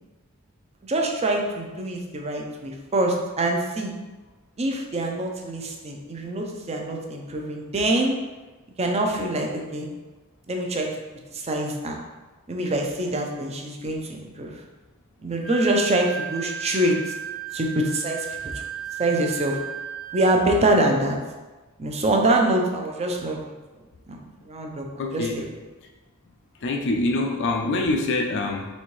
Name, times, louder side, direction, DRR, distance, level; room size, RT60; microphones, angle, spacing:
voice 1, 0.8-3.9 4.6-8.1 8.8-9.9 10.5-10.9 11.3-12.0 12.5-14.5 15.2-17.0 17.5-18.3 18.5-18.6 19.0-19.6 20.1-21.2 21.8-23.4 24.1-24.8 25.1-25.6, right 1 dB, 30° right, 2 dB, 0.5 m, -24 dB
Wind instrument woodwind instrument, 15.4-20.9, right 8 dB, 85° right, 0.9 m, -35 dB
voice 2, 25.0-25.3 26.6-28.7, left 2 dB, 60° left, 1 dB, 0.5 m, -25 dB
4.2 x 3.4 x 3.1 m, 1.2 s
head